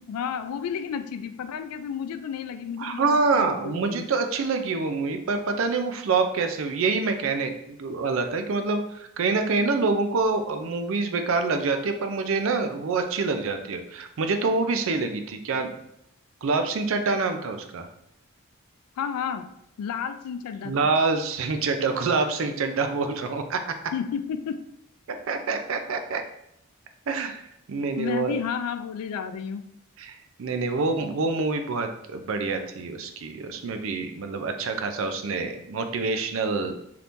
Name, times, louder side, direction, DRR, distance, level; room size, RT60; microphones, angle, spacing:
voice 1, 0.0-4.1 19.0-19.5 19.8-20.9 23.9-24.6 28.0-29.7 34.6-34.7, left 7 dB, 90° left, 14 dB, 0.3 m, -32 dB
voice 2, 2.8-15.7 16.4-17.9 20.6-23.6 25.3-26.2 27.1-28.4 30.0-36.8, right 4 dB, 65° right, 6 dB, 0.4 m, -26 dB
3.5 x 2.8 x 2.5 m, 0.76 s
head